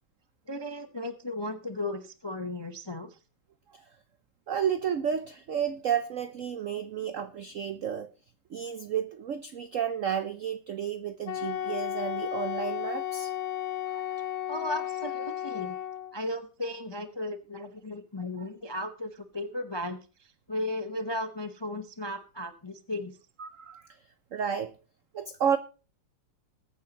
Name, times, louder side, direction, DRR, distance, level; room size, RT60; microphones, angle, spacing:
voice 1, 0.5-3.2 14.5-15.8 16.1-23.2, left 1 dB, 35° left, 8 dB, 0.4 m, -35 dB
voice 2, 4.5-8.1 8.5-13.3 13.9-14.3 18.4-18.5 23.4-24.0 24.3-24.7 25.1-25.6, right 8 dB, 80° right, 12 dB, 0.7 m, -32 dB
Wind instrument woodwind instrument, 11.3-16.2, left 11 dB, 60° left, 1.1 m, -33 dB
21.0 x 9.3 x 2.9 m, 0.34 s
omnidirectional pair, 2.2 m